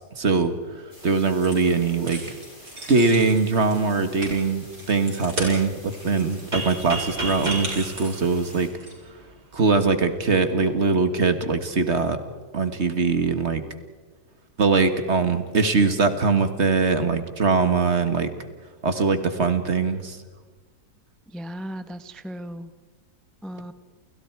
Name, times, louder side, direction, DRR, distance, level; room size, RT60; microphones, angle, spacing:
voice 1, 0.0-2.2 2.9-8.7 9.5-12.2 12.5-13.6 14.6-18.3 18.8-20.2, right 4 dB, 45° right, 9 dB, 1.9 m, -22 dB
sound 1, 0.9-8.7, left 1 dB, 30° left, 5.9 m, -48 dB
sound 2, 1.4-1.7 2.0-8.9, right 1 dB, 70° right, 6.3 m, -37 dB
sound 3, 6.5-9.3, right 2 dB, 25° right, 3.6 m, -32 dB
voice 2, 21.3-22.7 23.4-23.7, equal, ahead, 10 dB, 0.5 m, -36 dB
29.5 x 29.0 x 4.7 m, 1.3 s
omnidirectional pair, 1.8 m